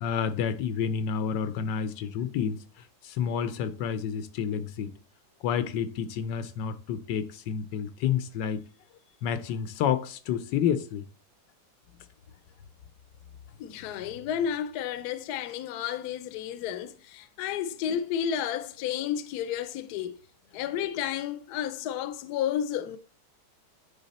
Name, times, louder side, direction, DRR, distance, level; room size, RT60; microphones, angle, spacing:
voice 1, 0.0-2.6 3.0-4.9 5.4-8.6 9.2-11.0, left 8 dB, 90° left, 1.3 m, -29 dB
voice 2, 13.6-20.2 20.5-23.0, left 9 dB, 75° left, 1.1 m, -32 dB
9.6 x 3.5 x 4.1 m
omnidirectional pair, 1.9 m